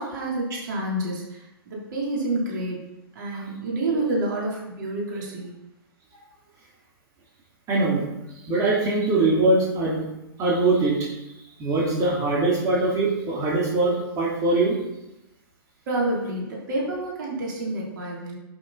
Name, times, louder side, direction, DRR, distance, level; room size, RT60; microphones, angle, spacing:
voice 1, 0.0-2.8 3.2-5.5 15.9-18.4, right 2 dB, 55° right, -4 dB, 3.6 m, -28 dB
voice 2, 7.7-8.1 8.5-10.0 10.4-11.1 11.6-14.8, right 2 dB, 25° right, -5 dB, 3.4 m, -22 dB
11.5 x 6.6 x 4.3 m, 0.93 s
figure-of-eight pair, 115°, 13 cm